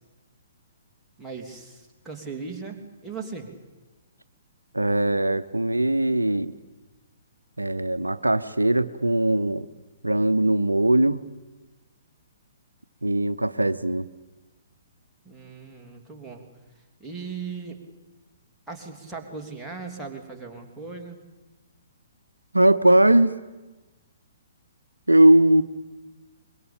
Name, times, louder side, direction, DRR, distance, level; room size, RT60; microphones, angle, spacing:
voice 1, 1.2-3.5 15.2-16.4 17.0-17.8 18.7-21.2, right 4 dB, 5° right, -1 dB, 3.1 m, -38 dB
voice 2, 4.7-6.5 7.6-9.7 10.0-11.2 13.0-14.1 22.5-23.4 25.1-25.6, right 1 dB, 85° right, 13 dB, 0.8 m, -20 dB
25.0 x 22.0 x 8.8 m, 1.2 s
figure-of-eight pair, 120°, 0 cm